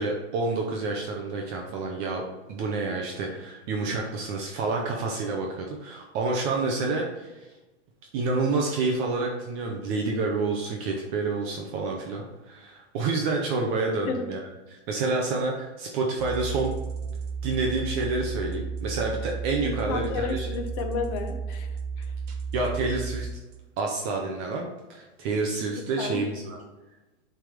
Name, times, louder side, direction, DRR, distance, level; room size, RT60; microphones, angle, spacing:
voice 1, 0.0-7.5 8.1-14.4 14.7-16.8 17.4-20.5 22.5-23.3 23.8-24.6 24.9-26.6, right 3 dB, 20° right, 0 dB, 0.4 m, -28 dB
sound 1, 16.2-24.0, right 5 dB, 40° right, 1.0 m, -33 dB
voice 2, 19.6-21.7 22.0-22.1 26.0-26.3, left 5 dB, 35° left, 6 dB, 0.6 m, -32 dB
7.6 x 3.4 x 4.7 m, 1.1 s
supercardioid pair, 155°, 35 cm